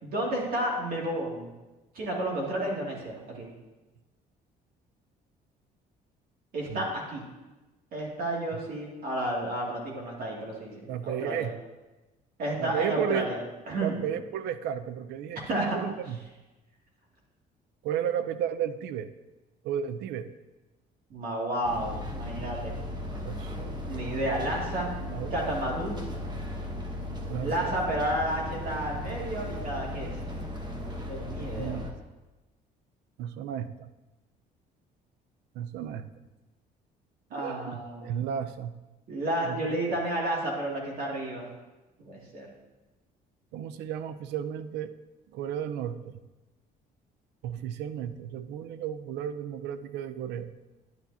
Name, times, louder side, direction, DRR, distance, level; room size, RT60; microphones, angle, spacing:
voice 1, 0.0-1.5 1.9-3.5 6.5-7.2 7.9-10.7 11.0-11.5 12.4-13.4 13.7-14.0 15.5-15.8 21.1-22.7 23.9-24.9 25.3-26.0 27.4-30.1 31.0-31.8 37.3-38.1 39.1-41.5 42.0-42.5, right 1 dB, 60° right, -3 dB, 2.4 m, -31 dB
voice 2, 10.9-11.5 12.6-13.3 13.8-16.2 17.8-19.1 19.6-20.3 23.2-23.8 25.0-25.4 27.3-27.8 31.6-31.9 33.2-33.9 35.5-36.1 37.3-38.7 39.4-39.6 43.5-44.9 45.3-46.2 47.4-50.6, right 9 dB, 85° right, 12 dB, 0.6 m, -33 dB
sound 1, 21.6-31.9, left 1 dB, 25° right, 1.1 m, -36 dB
10.5 x 9.3 x 2.8 m, 1.1 s
cardioid pair, 110°, 17 cm